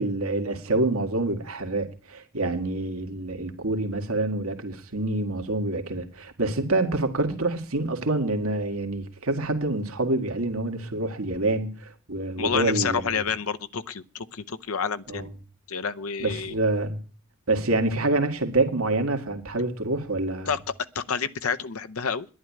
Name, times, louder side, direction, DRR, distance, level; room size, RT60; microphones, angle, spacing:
voice 1, 0.0-13.3 15.1-15.3 16.2-17.0 17.5-20.5, right 2 dB, 75° right, 2.0 m, -27 dB
voice 2, 12.4-15.3 15.7-16.5 20.5-20.6 20.9-22.3, left 6 dB, 80° left, 0.8 m, -29 dB
11.0 x 10.5 x 8.5 m
head